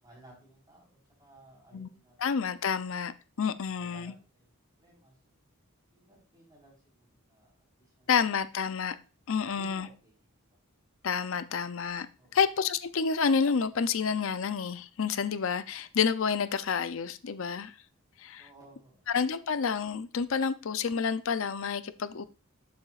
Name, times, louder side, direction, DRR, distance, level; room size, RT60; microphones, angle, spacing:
voice 1, 0.0-2.4 3.6-4.5 4.8-5.4 5.9-8.1 9.3-10.6 12.2-12.4 18.4-19.1, right 1 dB, 20° right, -4 dB, 4.1 m, -57 dB
voice 2, 2.2-3.1 3.4-4.1 8.1-9.0 9.3-9.9 11.0-12.1 12.3-17.7 18.2-18.5 19.1-22.2, left 6 dB, 65° left, 13 dB, 0.5 m, -29 dB
11.5 x 6.9 x 2.4 m, 0.34 s
head